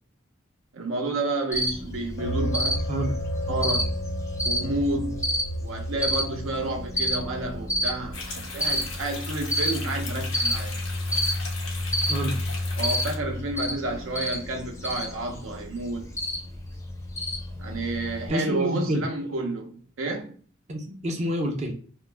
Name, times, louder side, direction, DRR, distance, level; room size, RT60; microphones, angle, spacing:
voice 1, 0.7-2.9 3.5-3.9 4.4-10.7 12.8-16.1 17.6-20.3, right 2 dB, 85° right, 0.7 m, -30 dB
Cricket, 1.5-18.3, equal, 15° left, 0.5 m, -30 dB
sound 1, 2.2-8.7, equal, 60° left, 0.5 m, -33 dB
sound 2, 8.1-13.2, left 3 dB, 85° left, 0.9 m, -38 dB
voice 2, 12.0-12.4 18.3-19.0 20.7-21.7, equal, 35° right, 0.5 m, -28 dB
2.3 x 2.0 x 3.2 m
head